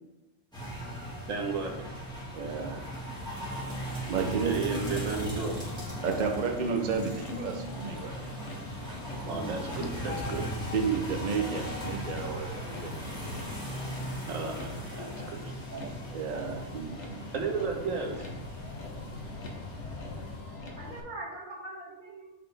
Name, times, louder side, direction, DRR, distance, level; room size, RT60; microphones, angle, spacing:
sound 1, 0.5-20.4, equal, 5° left, 1.8 m, -38 dB
voice 1, 1.3-1.7 4.4-5.5 9.3-10.4 14.3-15.4 17.3-18.2, right 4 dB, 85° right, 1 dB, 1.3 m, -33 dB
voice 2, 2.3-2.9 4.1-4.8 6.0-8.2 10.7-12.9 15.7-17.3, right 6 dB, 50° right, 3 dB, 0.5 m, -32 dB
Motor vehicle (road), 4.9-21.0, left 3 dB, 65° left, 1.2 m, -43 dB
sound 2, 5.6-13.0, right 1 dB, 35° left, 1.3 m, -46 dB
voice 3, 20.2-22.3, right 2 dB, 35° right, -5 dB, 1.7 m, -43 dB
7.8 x 4.0 x 3.3 m, 1.0 s
omnidirectional pair, 1.3 m